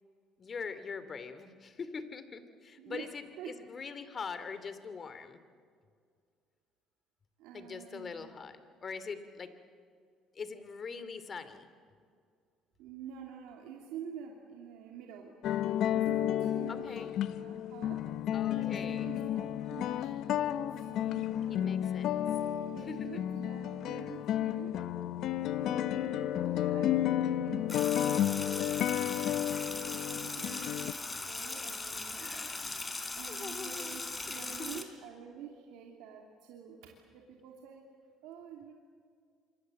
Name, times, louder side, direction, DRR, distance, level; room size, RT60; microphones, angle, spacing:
voice 1, 0.4-5.4 7.5-9.5 10.3-11.7 16.7-17.1 18.3-19.1 21.5-22.2 22.9-23.2 32.2-32.8 33.3-34.4, left 5 dB, 40° left, 11 dB, 2.6 m, -43 dB
voice 2, 2.8-3.5 7.4-8.3 12.8-15.3 15.9-17.0 17.4-18.0 18.6-21.8 22.4-24.7 25.5-28.4 28.9-29.3 30.1-32.5 33.1-37.8 38.2-38.7, right 8 dB, 80° right, 1 dB, 2.8 m, -48 dB
sound 1, 15.4-30.9, left 11 dB, 65° left, 0.9 m, -32 dB
Sink (filling or washing), 27.7-34.8, left 3 dB, 20° left, 3.7 m, -39 dB
27.0 x 24.0 x 7.9 m, 2.1 s
supercardioid pair, 80°, 0 cm